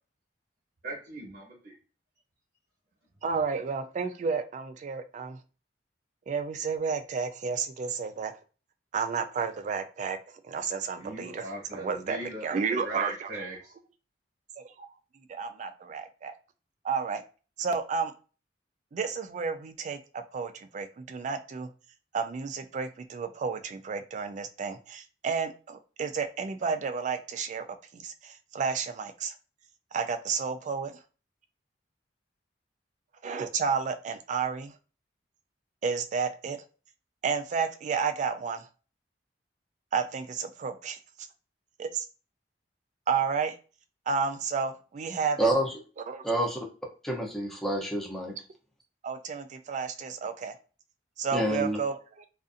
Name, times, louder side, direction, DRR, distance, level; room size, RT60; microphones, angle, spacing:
voice 1, 0.8-1.7 11.0-13.7, right 2 dB, 55° right, 1.0 m, -39 dB
voice 2, 3.2-5.4 6.3-8.3 8.9-10.2 10.4-13.3 14.6-14.9 15.1-16.3 16.8-17.2 17.6-18.1 18.9-21.7 22.1-27.7 27.9-29.3 29.9-30.9 33.2-34.8 35.8-36.6 37.2-38.7 39.9-41.0 41.8-42.1 43.1-43.6 44.1-45.5 46.1-46.2 49.0-50.6 51.2-52.3, right 5 dB, 40° right, 0.3 m, -31 dB
voice 3, 46.2-46.6 47.0-48.3 51.3-51.8, right 1 dB, ahead, 0.6 m, -27 dB
2.5 x 2.4 x 2.5 m
head